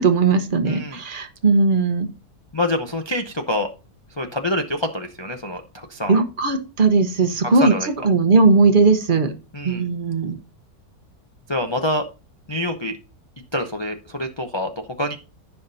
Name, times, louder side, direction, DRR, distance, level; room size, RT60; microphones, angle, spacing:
voice 1, 0.0-2.1 6.1-7.7 8.0-9.3 9.6-10.4, right 3 dB, 35° right, 8 dB, 1.0 m, -18 dB
voice 2, 0.7-1.0 2.5-3.7 4.2-6.2 7.4-7.9 9.5-9.8 11.5-12.0 12.5-13.0 13.5-15.2, left 1 dB, 30° left, 4 dB, 0.5 m, -26 dB
15.0 x 5.8 x 2.7 m, 0.32 s
omnidirectional pair, 1.7 m